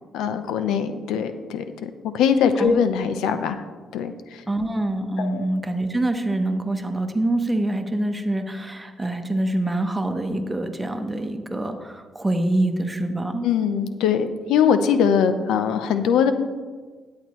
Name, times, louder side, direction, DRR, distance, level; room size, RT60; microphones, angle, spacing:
voice 1, 0.1-3.6 3.9-4.4 5.2-5.5 13.4-16.3, left 7 dB, 90° left, 10 dB, 0.6 m, -22 dB
voice 2, 4.5-13.5, right 1 dB, 15° right, 6 dB, 1.0 m, -25 dB
13.0 x 8.5 x 3.1 m, 1.5 s
cardioid pair, 90°, 0 cm